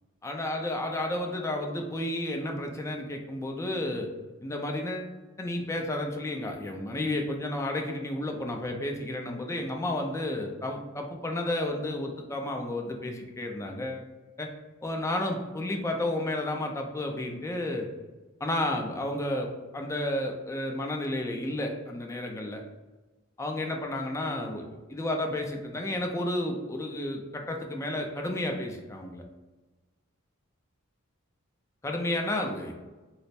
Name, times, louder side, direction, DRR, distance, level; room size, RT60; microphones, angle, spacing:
voice 1, 0.2-4.1 4.4-5.1 5.4-14.1 14.4-14.5 14.8-17.9 18.4-19.5 19.7-22.6 23.4-29.2 31.8-32.8, left 1 dB, 15° left, 2 dB, 0.4 m, -32 dB
3.1 x 2.0 x 4.1 m, 1.2 s
head